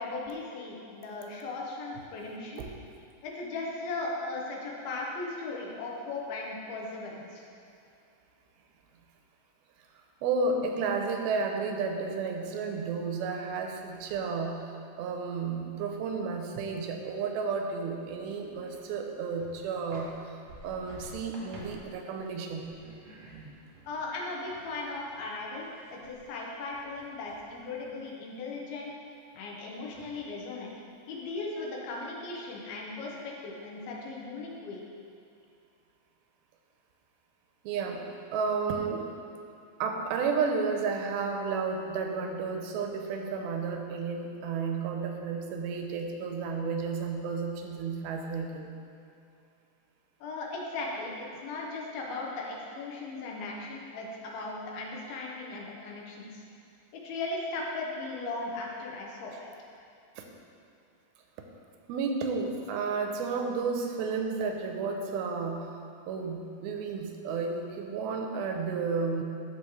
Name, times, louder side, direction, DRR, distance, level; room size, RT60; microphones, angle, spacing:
voice 1, 0.0-2.7 3.2-7.4 23.9-28.9 29.3-30.7 31.1-34.8 50.2-56.4 56.9-59.5, left 3 dB, 80° left, -2 dB, 2.8 m, -37 dB
voice 2, 10.2-14.7 15.0-20.4 20.6-22.7 37.6-38.0 38.3-39.1 39.8-48.7 60.2-60.3 61.9-65.8 66.1-69.2, right 4 dB, 85° right, 3 dB, 2.5 m, -32 dB
sound 1, 13.7-14.5 14.9-17.5 17.7-17.8 18.3-19.1 19.4-27.9 29.5-29.6 29.9-30.7 31.1-31.8, right 1 dB, 60° right, 1.8 m, -53 dB
13.5 x 4.9 x 3.1 m, 2.5 s
omnidirectional pair, 4.4 m